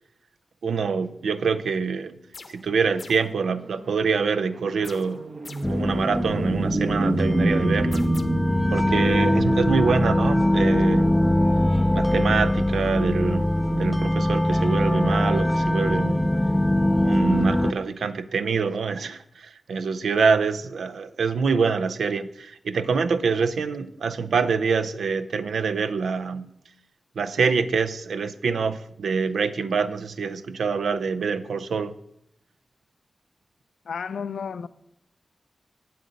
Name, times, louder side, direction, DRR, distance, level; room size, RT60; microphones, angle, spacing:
voice 1, 0.6-2.2 2.5-5.2 5.7-8.0 8.7-11.1 11.9-16.3 17.0-26.5 27.2-31.9, right 5 dB, 90° right, 0.4 m, -25 dB
sound 1, 2.3-2.7 3.0-3.4 4.8-5.8 7.9-8.2, left 3 dB, 50° left, 0.7 m, -44 dB
sound 2, 3.5-13.0, right 2 dB, 55° right, 0.9 m, -31 dB
sound 3, 5.6-17.7, left 1 dB, 10° left, 0.4 m, -22 dB
voice 2, 33.8-34.7, left 6 dB, 85° left, 0.4 m, -32 dB
8.1 x 7.7 x 5.1 m
cardioid pair, 65°, 0 cm